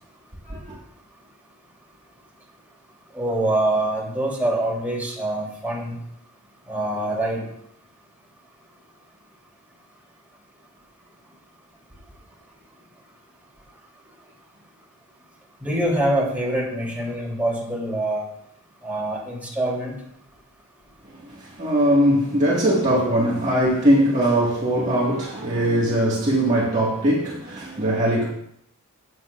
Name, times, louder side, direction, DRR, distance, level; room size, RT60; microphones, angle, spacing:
voice 1, 0.5-0.8 21.2-28.3, right 1 dB, 35° right, 1.8 m, -21 dB
voice 2, 3.1-5.9 6.7-7.4 15.6-18.2 18.8-19.9, right 1 dB, 5° right, 3.3 m, -24 dB
17.5 x 7.8 x 2.5 m
head